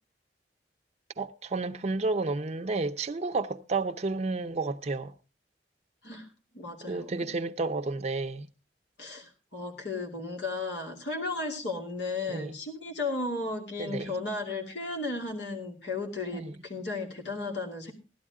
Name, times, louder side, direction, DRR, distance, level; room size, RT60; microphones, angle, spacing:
voice 1, 1.2-5.1 6.9-8.5 12.3-12.6 13.8-14.1 16.3-16.5, right 3 dB, 40° right, 0.6 m, -31 dB
voice 2, 6.5-7.1 9.0-17.9, left 3 dB, 85° left, 2.7 m, -34 dB
16.0 x 12.0 x 3.6 m
head